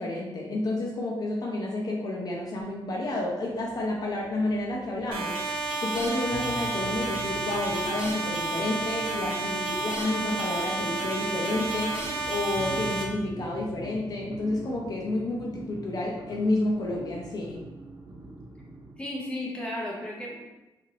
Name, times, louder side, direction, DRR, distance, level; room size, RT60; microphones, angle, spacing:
voice 1, 0.0-5.4 5.8-17.6, left 2 dB, 50° left, -1 dB, 0.5 m, -30 dB
sound 1, 2.2-19.0, right 2 dB, 50° right, 0.7 m, -44 dB
sound 2, 5.1-13.0, right 2 dB, 85° right, 0.7 m, -31 dB
voice 2, 19.0-20.4, left 1 dB, 10° left, -3 dB, 0.7 m, -34 dB
3.6 x 2.4 x 3.2 m, 1.0 s
wide cardioid pair, 150°, 9 cm